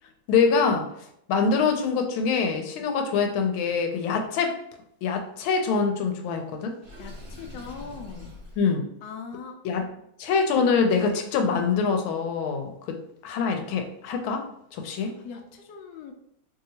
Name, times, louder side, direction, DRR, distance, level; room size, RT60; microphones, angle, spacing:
voice 1, 0.3-0.9 1.3-4.5 5.0-6.8 8.6-8.8 9.6-9.8 10.2-13.0 13.2-14.4 14.7-15.1, left 5 dB, 90° left, 4 dB, 1.4 m, -24 dB
Water / Sink (filling or washing), 6.8-8.6, left 1 dB, 35° right, 1.1 m, -42 dB
voice 2, 7.0-8.4 9.0-9.6 15.0-16.1, left 5 dB, 70° left, 3 dB, 1.0 m, -41 dB
3.3 x 2.7 x 2.8 m, 0.75 s
omnidirectional pair, 2.2 m